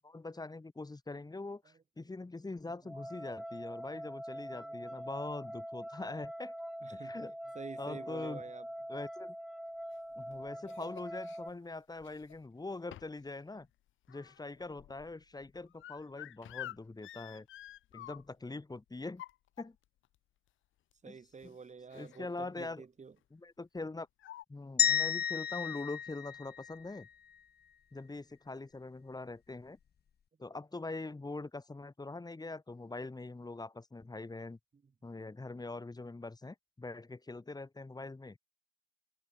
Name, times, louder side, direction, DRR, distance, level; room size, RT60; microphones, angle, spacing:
voice 1, 0.0-6.5 6.9-7.3 7.8-8.4 8.9-9.3 10.1-13.7 14.1-17.5 17.9-19.2 19.6-19.8 21.1-21.2 21.9-22.8 23.3-24.1 24.5-27.1 27.9-29.8 30.4-34.6 35.0-38.4, left 3 dB, 20° left, 6.9 m, -43 dB
sound 1, 2.8-11.5, equal, ahead, 3.0 m, -44 dB
voice 2, 4.3-5.0 6.8-7.2 7.5-8.7 21.0-23.2, right 5 dB, 35° right, 7.2 m, -49 dB
sound 2, 9.9-11.4 12.0-12.5 12.9-13.3 13.6-18.5 19.0-20.1 20.9-21.0 21.3-21.5 21.9-22.3 22.6-22.8 23.8-23.9 24.2-24.4, left 13 dB, 80° left, 6.6 m, -50 dB
sound 3, 24.8-27.0, left 8 dB, 55° left, 3.2 m, -32 dB
cardioid pair, 90°, 20 cm